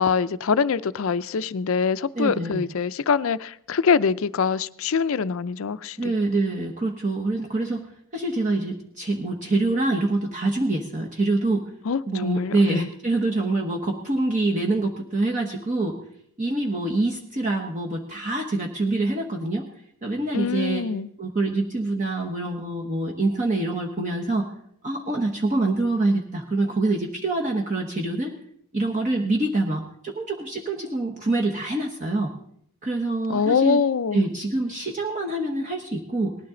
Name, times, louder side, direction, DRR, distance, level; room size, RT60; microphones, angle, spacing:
voice 1, 0.0-6.1 11.9-12.9 20.3-21.1 33.3-34.2, left 5 dB, 65° left, 14 dB, 0.5 m, -24 dB
voice 2, 2.1-2.6 6.0-11.7 12.1-16.0 16.4-19.7 20.0-20.9 21.2-24.5 24.8-28.3 28.7-32.3 32.8-33.8 34.1-36.4, right 2 dB, 35° right, 0 dB, 1.1 m, -25 dB
19.0 x 12.5 x 3.8 m, 0.69 s
head